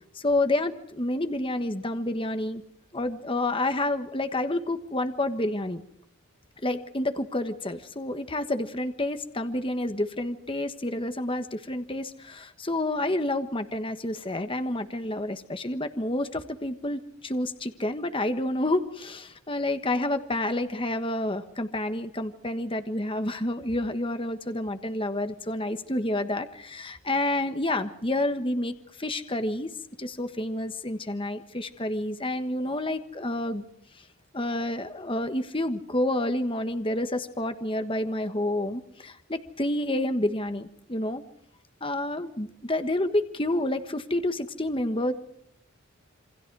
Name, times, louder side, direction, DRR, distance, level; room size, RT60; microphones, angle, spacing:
voice 1, 0.1-2.6 2.9-5.8 6.6-29.7 30.0-33.7 34.3-41.2 41.8-45.1, left 1 dB, 25° left, 8 dB, 1.4 m, -29 dB
28.0 x 24.5 x 4.8 m, 0.72 s
head